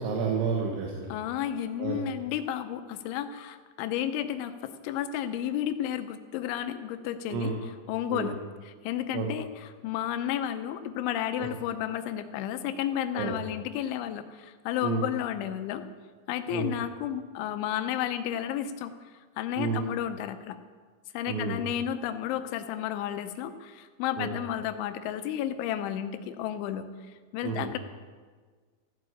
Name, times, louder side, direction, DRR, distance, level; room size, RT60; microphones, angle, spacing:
voice 1, 0.0-1.1 1.8-2.0 7.3-7.6 8.1-8.3 9.1-9.3 11.4-11.5 13.1-13.3 14.8-15.0 16.5-16.7 19.6-19.8 21.3-21.6 24.2-24.3 27.4-27.7, right 5 dB, 85° right, 0 dB, 3.7 m, -30 dB
voice 2, 1.1-7.5 7.9-8.4 8.7-15.8 16.3-18.9 19.4-20.6 21.1-26.9 27.3-27.8, left 10 dB, 90° left, 10 dB, 3.2 m, -32 dB
14.5 x 7.8 x 8.5 m, 1.5 s
omnidirectional pair, 5.2 m